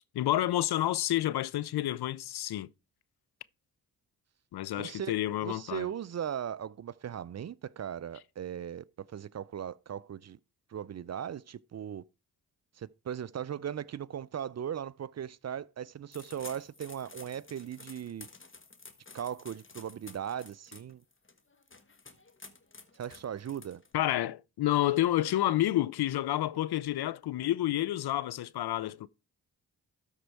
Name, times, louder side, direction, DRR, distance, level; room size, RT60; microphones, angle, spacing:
voice 1, 0.1-2.7 4.5-5.9 23.9-29.1, left 14 dB, 70° left, 0.6 m, -29 dB
voice 2, 4.8-5.1 5.4-10.4 10.7-12.0 12.8-18.3 19.1-21.0 22.9-23.8, right 9 dB, 40° right, 0.5 m, -38 dB
sound 1, 16.1-24.1, left 4 dB, 30° left, 1.5 m, -52 dB
12.5 x 4.5 x 4.6 m
supercardioid pair, 50°, 40 cm